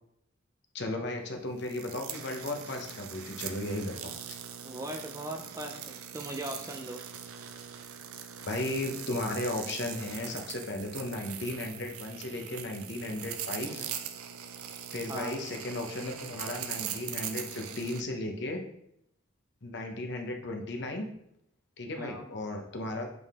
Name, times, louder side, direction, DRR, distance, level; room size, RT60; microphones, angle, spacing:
voice 1, 0.7-4.4 8.4-13.9 14.9-18.6 19.6-21.1 21.8-23.1, left 2 dB, 50° left, 2 dB, 0.9 m, -35 dB
sound 1, 1.6-18.0, right 9 dB, 85° right, 0.5 m, -41 dB
voice 2, 4.6-7.0 15.1-15.4 22.0-22.3, right 1 dB, 15° right, 4 dB, 0.4 m, -39 dB
7.8 x 3.7 x 3.6 m, 0.76 s
head